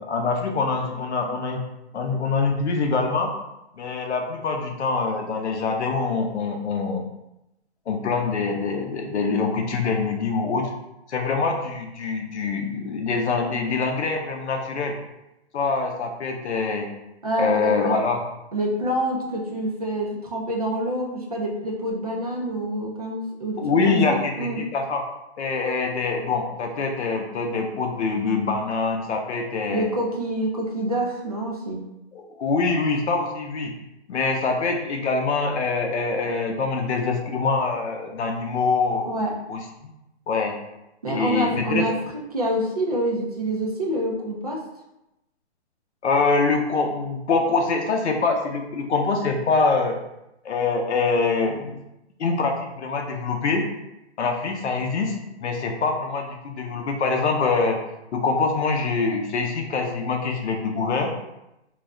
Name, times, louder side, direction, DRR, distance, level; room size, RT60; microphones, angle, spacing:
voice 1, 0.0-1.6 1.9-3.3 3.8-7.1 7.9-10.7 11.1-14.9 15.5-16.9 17.4-18.2 23.6-25.0 25.4-29.9 32.1-33.7 34.1-39.1 39.5-39.6 40.3-40.5 41.1-41.8 46.0-49.9 50.4-51.8 52.2-53.7 54.2-55.1 55.4-57.8 58.1-61.1, left 4 dB, 75° left, 3 dB, 0.6 m, -24 dB
voice 2, 17.2-18.0 18.5-24.7 29.7-31.8 39.1-39.4 41.0-41.9 42.3-44.6, right 1 dB, 35° right, -1 dB, 0.4 m, -27 dB
2.4 x 2.1 x 3.5 m, 0.90 s
hypercardioid pair, 165°, 34 cm